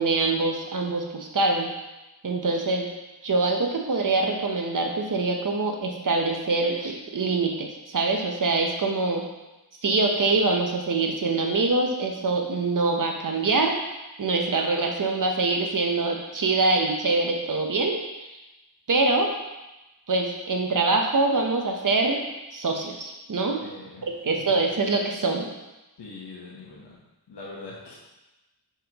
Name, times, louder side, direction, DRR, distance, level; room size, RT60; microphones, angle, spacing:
voice 1, 0.0-1.7 2.2-2.9 3.2-9.3 9.8-13.8 14.2-18.3 18.9-19.3 20.1-22.2 22.5-23.6 24.0-25.5, right 3 dB, 50° right, 2 dB, 0.9 m, -24 dB
voice 2, 23.6-24.0 26.0-26.9 27.3-28.0, left 3 dB, 80° left, -5 dB, 1.2 m, -42 dB
5.7 x 5.6 x 3.0 m, 1.0 s
wide cardioid pair, 85°, 40 cm